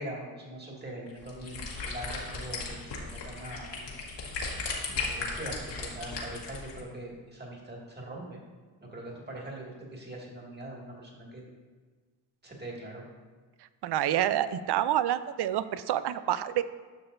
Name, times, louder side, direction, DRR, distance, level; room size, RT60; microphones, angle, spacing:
voice 1, 0.0-3.9 4.9-8.4 8.9-11.4 12.4-13.0, right 1 dB, 20° right, -2 dB, 2.1 m, -42 dB
sound 1, 1.1-6.8, left 3 dB, 65° left, 1.7 m, -36 dB
voice 2, 13.8-16.6, right 11 dB, 60° right, 14 dB, 0.5 m, -28 dB
11.0 x 5.9 x 2.6 m, 1.4 s
cardioid pair, 80°, 46 cm